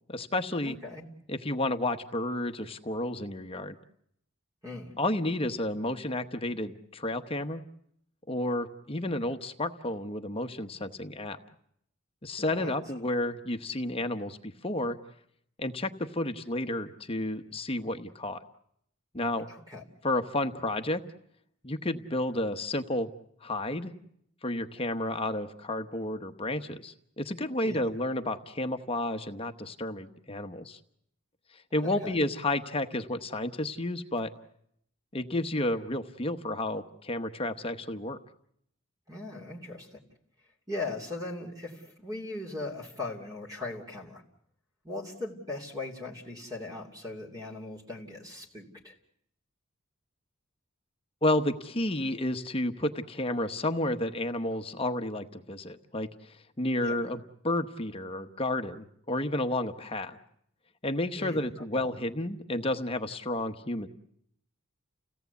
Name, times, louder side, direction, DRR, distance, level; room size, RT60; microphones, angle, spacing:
voice 1, 0.1-0.7 1.3-3.8 5.0-7.6 8.3-11.4 12.2-15.0 15.6-18.4 19.1-19.5 20.0-21.0 21.6-23.1 23.4-23.9 24.4-30.8 31.7-34.3 35.1-38.2 51.2-60.2 60.8-63.9, left 1 dB, 25° left, 8 dB, 1.0 m, -31 dB
voice 2, 0.6-1.0 4.6-4.9 12.4-12.8 19.5-19.8 27.6-27.8 31.8-32.1 39.1-40.0 40.7-44.2 44.8-48.9 56.8-57.0 61.1-61.9, left 2 dB, 20° right, 0 dB, 3.0 m, -39 dB
30.0 x 17.0 x 8.2 m, 0.72 s
head